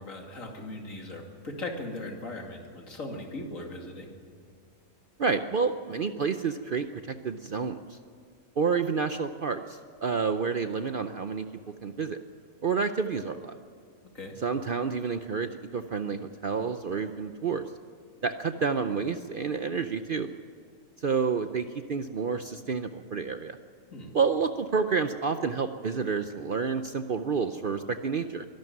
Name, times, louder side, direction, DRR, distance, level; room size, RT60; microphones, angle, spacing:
voice 1, 0.0-4.1 14.1-14.3 23.9-24.1, left 2 dB, 70° left, 2 dB, 3.0 m, -38 dB
voice 2, 5.2-8.0 8.6-11.5 11.8-12.2 12.6-13.6 14.4-17.6 18.2-20.3 21.0-23.6 24.1-28.4, right 5 dB, 50° right, 8 dB, 0.7 m, -29 dB
23.5 x 12.0 x 9.3 m, 2.1 s
omnidirectional pair, 1.5 m